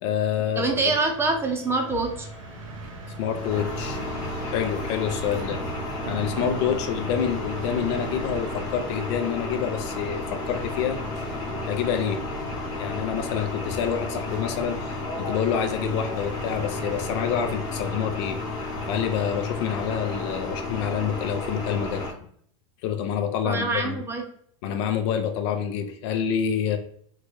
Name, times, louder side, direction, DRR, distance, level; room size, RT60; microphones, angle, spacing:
voice 1, 0.0-0.9 3.2-4.0 4.4-5.6 6.1-11.0 11.6-12.2 12.8-18.4 18.9-22.0 22.8-24.0 24.6-26.8, left 8 dB, 60° left, 7 dB, 0.6 m, -27 dB
voice 2, 0.6-2.3 23.4-24.3, right 3 dB, 15° right, 2 dB, 0.7 m, -25 dB
sound 1, 0.9-20.3, left 4 dB, 85° left, 1.1 m, -42 dB
sound 2, 1.9-19.2, right 4 dB, 80° right, 0.5 m, -41 dB
sound 3, 3.3-22.1, left 2 dB, 25° left, 1.2 m, -33 dB
3.8 x 2.3 x 3.1 m, 0.62 s
supercardioid pair, 130°, 17 cm